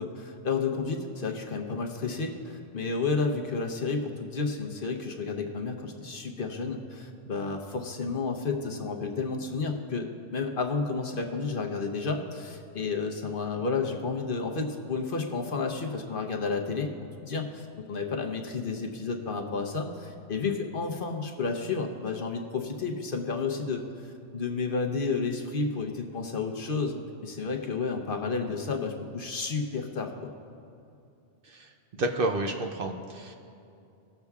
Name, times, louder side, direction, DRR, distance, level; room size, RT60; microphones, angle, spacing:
voice 1, 0.0-16.9 17.2-26.9 27.2-30.3, left 4 dB, 55° left, 3 dB, 0.9 m, -31 dB
voice 2, 31.4-33.3, right 2 dB, 55° right, 4 dB, 0.8 m, -31 dB
19.5 x 6.8 x 2.3 m, 2.6 s
omnidirectional pair, 1.2 m